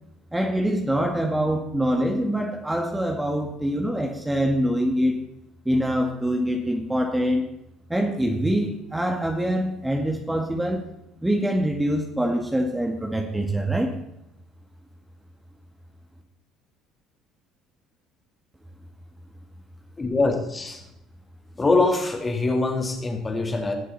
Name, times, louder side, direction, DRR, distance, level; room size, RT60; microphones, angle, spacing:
voice 1, 0.3-5.2 5.7-7.5 7.9-10.8 11.2-13.9, equal, 10° right, 2 dB, 1.9 m, -24 dB
voice 2, 20.0-20.8 21.6-23.7, left 3 dB, 25° left, 3 dB, 3.0 m, -23 dB
19.0 x 7.4 x 4.1 m, 0.84 s
hypercardioid pair, 60°, 0 cm